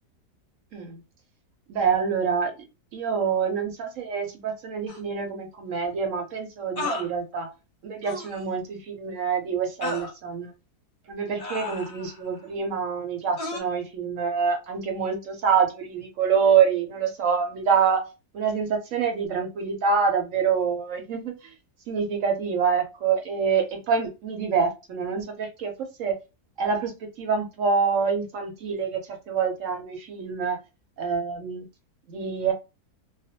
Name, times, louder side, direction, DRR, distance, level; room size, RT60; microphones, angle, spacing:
voice 1, 1.7-2.5 2.9-7.5 7.8-10.5 11.1-18.1 18.3-21.5 21.9-26.2 26.6-29.0 29.3-30.6 31.0-31.7 32.1-32.5, right 6 dB, 70° right, 4 dB, 0.9 m, -26 dB
sound 1, 4.9-5.0 6.8-7.1 8.0-8.4 9.8-10.1 11.4-12.2 13.4-13.6, left 2 dB, 40° left, 0.9 m, -32 dB
2.4 x 2.2 x 2.6 m, 0.27 s
omnidirectional pair, 1.6 m